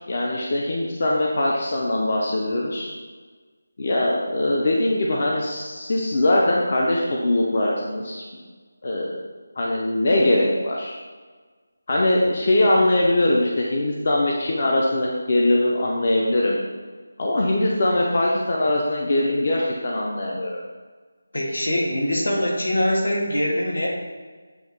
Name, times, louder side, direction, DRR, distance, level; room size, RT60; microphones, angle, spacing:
voice 1, 0.1-2.9 3.8-8.2 8.8-9.2 9.6-11.0 11.9-16.6 17.2-20.6, left 1 dB, 35° left, -3 dB, 0.5 m, -21 dB
voice 2, 21.3-23.9, left 1 dB, 75° left, -2 dB, 1.7 m, -23 dB
7.8 x 2.7 x 4.5 m, 1.4 s
figure-of-eight pair, 180°, 0 cm